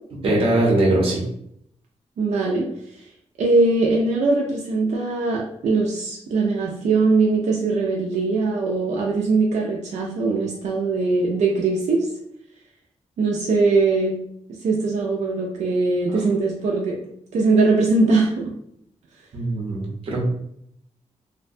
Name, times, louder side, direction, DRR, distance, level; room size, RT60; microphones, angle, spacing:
voice 1, 0.2-1.2 19.3-20.3, right 1 dB, 50° right, -3 dB, 0.7 m, -21 dB
voice 2, 2.2-2.7 3.4-12.0 13.2-14.2 14.6-17.0 17.3-18.4, right 3 dB, 85° right, -3 dB, 0.4 m, -21 dB
2.5 x 2.1 x 2.5 m, 0.72 s
wide cardioid pair, 175°, 12 cm